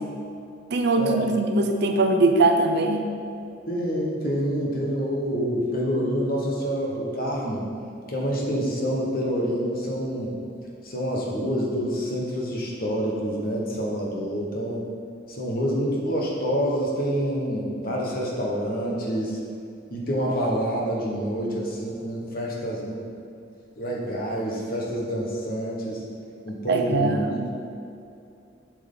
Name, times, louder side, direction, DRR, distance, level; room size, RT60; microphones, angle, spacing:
voice 1, 0.7-3.1 26.7-27.3, right 2 dB, 55° right, 5 dB, 0.6 m, -21 dB
voice 2, 3.7-7.7 8.1-10.3 10.8-14.8 15.3-19.4 19.9-23.0 23.8-26.0 26.4-27.5, equal, 45° left, -2 dB, 1.3 m, -27 dB
7.5 x 6.1 x 3.8 m, 2.6 s
head